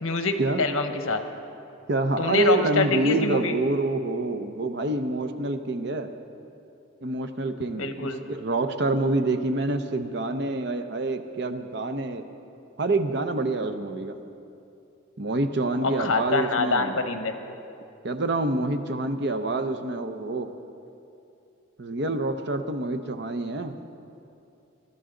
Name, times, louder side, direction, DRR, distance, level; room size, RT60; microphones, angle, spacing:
voice 1, 0.0-1.2 2.2-3.6 7.8-8.2 15.8-17.4, left 3 dB, 80° left, 7 dB, 1.1 m, -25 dB
voice 2, 1.9-6.1 7.0-12.3 12.8-14.2 15.2-16.9 18.0-20.5 21.8-23.8, right 2 dB, 55° right, 8 dB, 0.7 m, -27 dB
22.0 x 12.5 x 3.8 m, 2.7 s
head